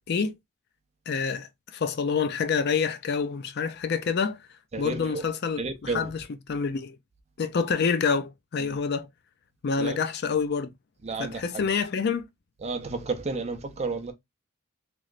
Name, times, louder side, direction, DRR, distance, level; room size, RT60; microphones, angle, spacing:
voice 1, 1.1-4.4 4.8-7.0 7.4-9.1 9.6-10.7 11.2-12.2, left 5 dB, 50° left, 0.4 m, -27 dB
voice 2, 4.7-5.2 5.6-6.1 9.8-10.0 11.0-11.6 12.6-14.1, right 3 dB, 30° right, 0.5 m, -32 dB
3.0 x 3.0 x 2.4 m
head